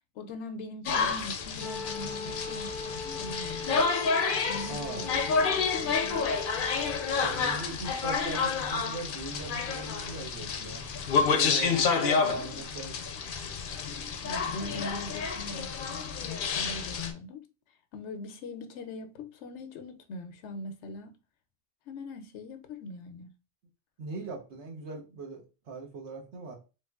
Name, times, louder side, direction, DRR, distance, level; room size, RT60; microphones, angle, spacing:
voice 1, 0.1-3.9 4.5-5.5 5.8-6.4 10.6-10.8 12.2-12.7 13.9-17.5 17.9-21.1 21.9-23.3, left 2 dB, 85° left, 0.9 m, -42 dB
sound 1, 0.9-17.1, left 5 dB, 60° left, 0.6 m, -29 dB
Wind instrument woodwind instrument, 1.6-7.6, left 3 dB, 15° right, 0.4 m, -40 dB
voice 2, 4.7-5.1 7.2-10.9 11.3-13.0 24.0-26.5, right 3 dB, 80° right, 1.2 m, -40 dB
3.2 x 3.1 x 2.3 m
omnidirectional pair, 1.1 m